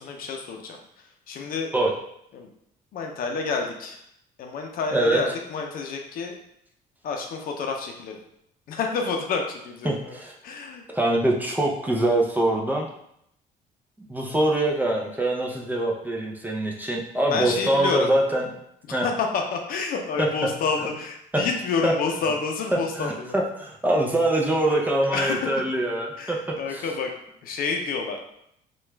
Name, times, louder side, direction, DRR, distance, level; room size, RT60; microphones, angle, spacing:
voice 1, 0.0-1.7 2.3-2.5 2.9-4.0 4.4-6.3 7.0-8.2 8.7-10.2 10.4-10.8 17.3-18.1 19.0-23.4 24.7-25.5 26.2-27.1 27.4-28.2, left 4 dB, 60° left, 3 dB, 0.6 m, -29 dB
voice 2, 9.8-10.3 10.9-12.9 14.1-18.4 18.9-19.1 20.2-20.3 21.8-21.9 23.0-26.4 26.7-26.8, right 1 dB, 10° right, -1 dB, 0.5 m, -23 dB
3.0 x 2.3 x 3.3 m, 0.75 s
cardioid pair, 110°, 17 cm